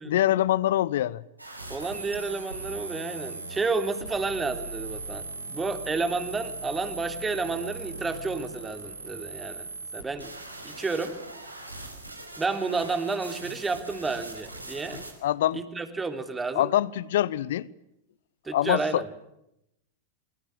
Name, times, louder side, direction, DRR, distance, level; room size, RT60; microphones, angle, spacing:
voice 1, 0.0-1.2 15.2-15.6 16.5-17.7 18.5-19.0, left 13 dB, 60° left, 1.0 m, -24 dB
sound 1, 1.4-15.1, right 3 dB, 90° right, 5.4 m, -39 dB
voice 2, 1.7-10.3 10.6-11.2 12.4-15.0 15.5-16.7 18.4-19.1, right 4 dB, 15° right, 3.4 m, -31 dB
27.0 x 23.5 x 7.9 m
figure-of-eight pair, 95°, 0 cm